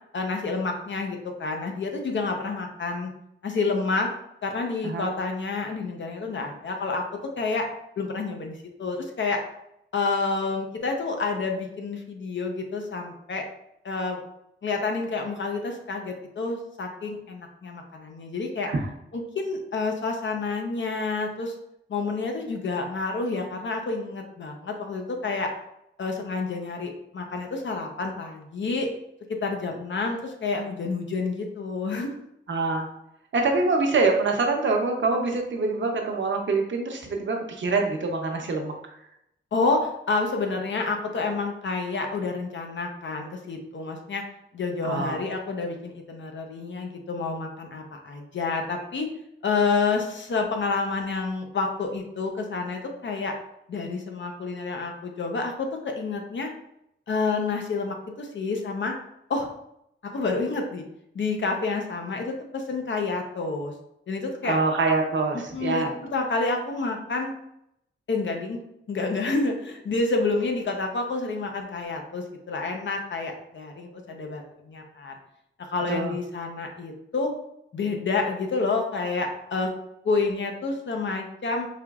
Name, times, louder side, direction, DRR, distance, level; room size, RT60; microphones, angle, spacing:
voice 1, 0.1-3.1 3.4-4.1 4.4-7.1 7.4-7.7 8.0-8.5 8.8-9.4 9.9-13.5 13.8-14.2 14.6-18.7 19.1-21.5 21.9-25.5 26.0-28.9 29.3-32.1 39.5-44.2 44.5-49.1 49.4-53.3 53.7-56.5 57.1-58.9 59.3-59.5 60.0-60.8 61.1-63.7 64.1-64.6 65.5-67.3 68.1-68.6 68.9-75.2 75.6-77.3 77.7-79.7 80.0-81.7, left 3 dB, 65° left, 2 dB, 0.6 m, -29 dB
voice 2, 32.5-32.9 33.3-38.7 44.8-45.2 64.4-65.9 75.9-76.2, right 3 dB, 65° right, 2 dB, 0.8 m, -25 dB
4.9 x 2.9 x 2.4 m, 0.78 s
wide cardioid pair, 120°, 21 cm